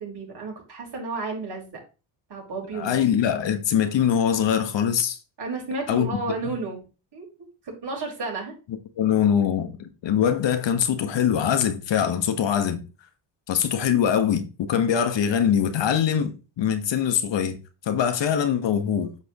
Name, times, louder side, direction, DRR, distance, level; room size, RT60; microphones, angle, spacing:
voice 1, 0.0-1.8 2.3-3.0 5.4-6.8 7.1-7.3 7.6-8.5, right 3 dB, 50° right, 4.5 m, -32 dB
voice 2, 2.7-5.2 5.9-6.1 9.0-12.8 13.5-17.6 17.8-19.1, left 8 dB, 60° left, 1.5 m, -23 dB
8.7 x 6.1 x 3.1 m
supercardioid pair, 65°, 49 cm